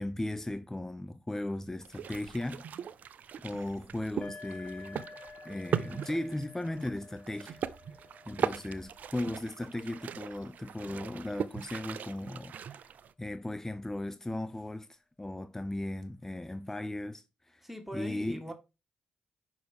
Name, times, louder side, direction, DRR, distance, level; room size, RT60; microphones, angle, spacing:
voice 1, 0.0-2.6 3.4-5.1 5.4-7.6 8.3-12.8 13.2-14.9 15.2-17.6 17.9-18.4, left 1 dB, 15° left, 0.7 m, -37 dB
sound 1, 1.8-13.1, right 8 dB, 65° right, 0.5 m, -39 dB
sound 2, 4.2-11.7, left 3 dB, 35° left, 1.6 m, -52 dB
voice 2, 8.3-8.6 17.6-18.5, equal, 5° right, 2.1 m, -42 dB
5.8 x 5.1 x 4.8 m
supercardioid pair, 45°, 3 cm